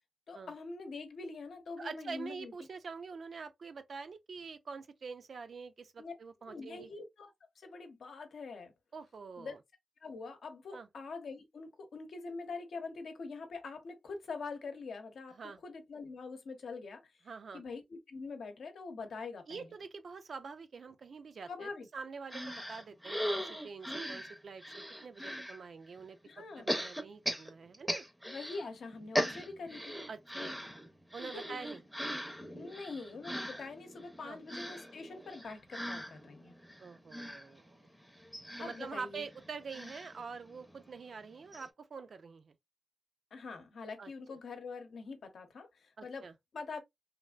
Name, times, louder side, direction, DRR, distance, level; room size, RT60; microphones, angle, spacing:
voice 1, 0.3-2.5 6.0-6.1 6.5-8.7 9.4-9.5 10.0-15.4 15.6-17.0 17.5-19.7 21.5-21.9 26.2-26.7 28.2-30.0 31.2-31.4 32.5-36.5 38.6-39.2 43.3-46.3 46.5-46.8, left 4 dB, 75° left, 0.8 m, -44 dB
voice 2, 1.8-6.9 8.9-9.6 10.7-10.9 15.3-15.6 17.3-17.6 19.5-28.0 30.1-30.6 31.1-31.8 34.2-34.4 36.8-37.8 38.6-42.5 44.0-44.1 46.0-46.3, right 5 dB, 55° right, 0.3 m, -46 dB
sound 1, 22.3-25.6 26.7-28.7 28.9-40.9 41.2-41.3 41.5-41.7, equal, ahead, 0.5 m, -39 dB
3.2 x 2.5 x 2.3 m
wide cardioid pair, 155°, 0 cm